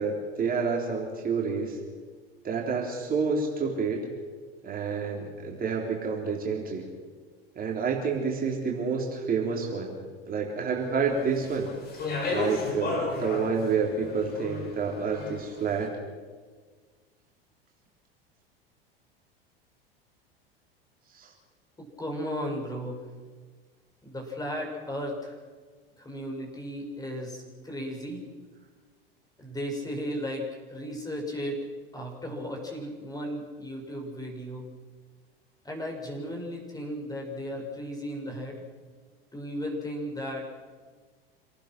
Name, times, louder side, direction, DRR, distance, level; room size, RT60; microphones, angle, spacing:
voice 1, 0.0-1.8 2.4-4.1 4.6-6.8 7.6-10.0 10.2-11.7 12.3-15.9 21.1-21.3, right 5 dB, 30° right, 0 dB, 3.8 m, -29 dB
Speech, 11.3-15.6, left 3 dB, 30° left, 6.3 m, -33 dB
voice 2, 21.8-23.1 24.0-25.4 26.0-28.2 29.4-31.7 31.9-34.7 35.6-38.6 39.3-40.5, equal, 10° left, 1 dB, 6.2 m, -35 dB
28.0 x 18.5 x 6.2 m, 1.5 s
figure-of-eight pair, 80°, 30 cm